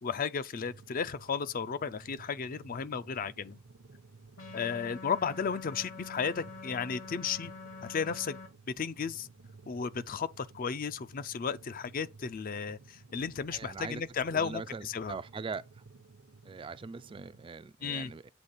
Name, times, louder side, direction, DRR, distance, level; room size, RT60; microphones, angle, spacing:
voice 1, 0.0-3.6 4.5-7.5 7.8-8.4 8.8-9.3 9.7-15.2 17.8-18.1, left 6 dB, 45° left, 0.4 m, -34 dB
sound 1, 0.6-17.5, right 3 dB, 70° right, 0.8 m, -55 dB
sound 2, 4.4-8.5, left 3 dB, 75° left, 2.8 m, -46 dB
voice 2, 13.5-14.0 14.3-15.6 16.5-18.3, right 4 dB, 25° right, 0.3 m, -41 dB
8.1 x 3.2 x 5.5 m
head